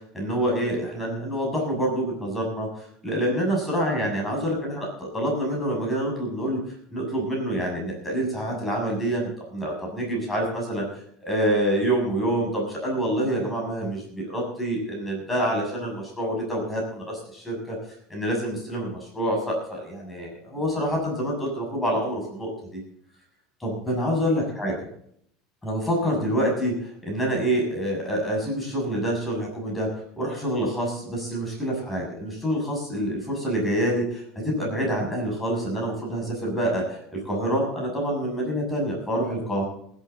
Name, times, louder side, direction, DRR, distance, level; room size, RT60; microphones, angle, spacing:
voice 1, 0.1-17.8 18.1-22.8 23.6-24.8 25.6-29.9 30.2-39.6, right 1 dB, 10° left, -1 dB, 7.0 m, -27 dB
19.5 x 12.0 x 4.0 m, 0.68 s
supercardioid pair, 135°, 0 cm